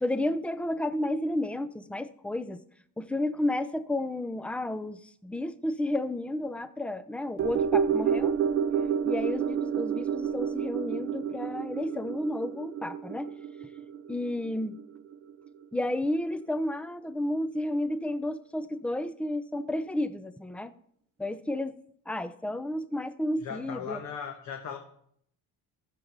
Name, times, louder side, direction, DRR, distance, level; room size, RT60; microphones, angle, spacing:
voice 1, 0.0-2.6 3.0-8.3 9.0-13.3 14.1-14.8 15.7-20.7 21.2-21.7 22.1-24.0, left 1 dB, 5° left, 13 dB, 0.5 m, -32 dB
sound 1, 7.4-15.8 16.1-16.2, right 7 dB, 40° right, 0.6 m, -30 dB
voice 2, 23.4-24.8, left 7 dB, 50° left, 4 dB, 1.2 m, -37 dB
14.0 x 7.3 x 5.2 m, 0.67 s
cardioid pair, 140°, 36 cm